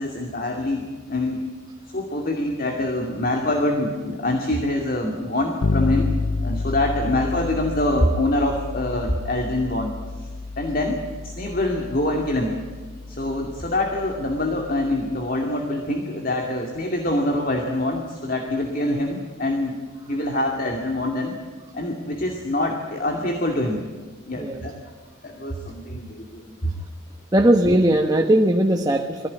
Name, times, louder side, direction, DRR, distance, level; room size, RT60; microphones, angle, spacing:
voice 1, 0.0-1.4 1.9-6.1 6.4-9.9 10.2-10.3 10.6-11.0 11.2-12.5 13.1-19.8 20.0-21.3 21.7-23.8 24.2-24.7 25.2-26.7, left 1 dB, 45° left, 2 dB, 2.4 m, -25 dB
Bass guitar, 5.6-15.3, left 3 dB, 75° left, 0.7 m, -30 dB
voice 2, 27.3-29.3, right 1 dB, 20° right, 4 dB, 1.1 m, -18 dB
23.0 x 16.0 x 9.8 m, 1.5 s
head